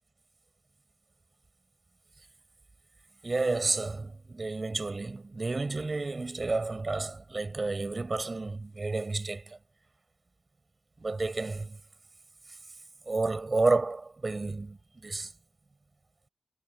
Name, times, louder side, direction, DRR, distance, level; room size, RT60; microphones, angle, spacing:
voice 1, 3.2-9.6 11.0-11.8 13.1-15.3, right 3 dB, 35° right, 6.1 m, -31 dB
wide cardioid pair, 85°, 0 cm